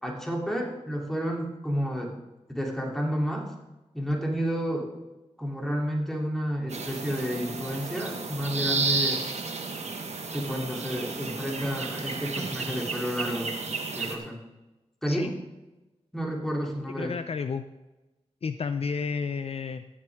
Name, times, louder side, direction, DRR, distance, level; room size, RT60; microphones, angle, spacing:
voice 1, 0.0-2.1 2.5-3.5 3.9-4.9 5.4-9.2 10.3-13.5 13.9-14.4 15.0-15.3 16.1-17.1, equal, 5° left, -1 dB, 3.0 m, -30 dB
sound 1, 6.7-14.2, right 4 dB, 70° right, 1.3 m, -32 dB
voice 2, 17.0-17.6 18.4-19.8, left 5 dB, 60° left, 10 dB, 0.5 m, -31 dB
16.0 x 7.4 x 3.6 m, 1.0 s
cardioid pair, 55°, 12 cm